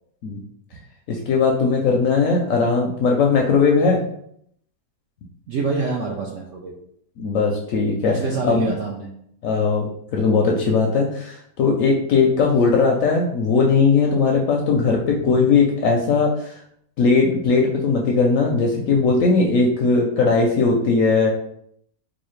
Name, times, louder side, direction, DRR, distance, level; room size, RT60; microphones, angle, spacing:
voice 1, 1.1-4.0 7.2-8.1 8.4-8.7 9.4-16.5 17.0-21.3, left 4 dB, 70° left, 0 dB, 0.8 m, -19 dB
voice 2, 5.5-6.7 8.1-9.1, right 4 dB, 70° right, -1 dB, 0.7 m, -26 dB
4.0 x 2.5 x 3.1 m, 0.69 s
omnidirectional pair, 1.8 m